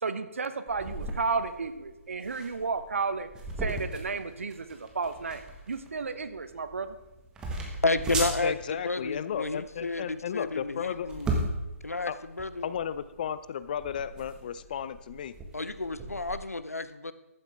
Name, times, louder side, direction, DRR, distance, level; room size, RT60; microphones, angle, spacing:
voice 1, 0.0-3.3 3.6-7.0, right 4 dB, 60° right, 11 dB, 1.1 m, -32 dB
sound 1, 0.7-16.4, right 2 dB, 10° right, 1.5 m, -38 dB
voice 2, 7.8-11.3 11.8-12.7 15.5-17.1, left 3 dB, 80° left, 13 dB, 0.8 m, -31 dB
voice 3, 8.4-11.1 12.1-12.2 12.6-15.3, left 8 dB, 35° left, 15 dB, 0.5 m, -34 dB
14.5 x 12.0 x 3.5 m, 1.0 s
figure-of-eight pair, 140°, 8 cm